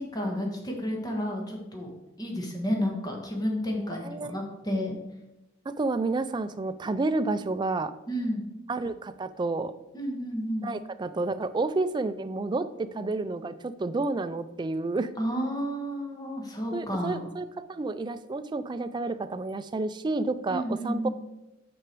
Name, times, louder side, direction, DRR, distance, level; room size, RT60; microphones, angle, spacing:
voice 1, 0.0-1.9 2.2-5.0 8.1-8.5 9.9-10.7 15.2-17.2 20.5-21.1, equal, 20° left, 0 dB, 1.5 m, -31 dB
voice 2, 4.0-4.4 5.7-7.9 8.7-9.7 10.6-15.1 16.7-21.1, right 3 dB, 25° right, 12 dB, 0.3 m, -30 dB
6.2 x 6.0 x 4.6 m, 0.96 s
head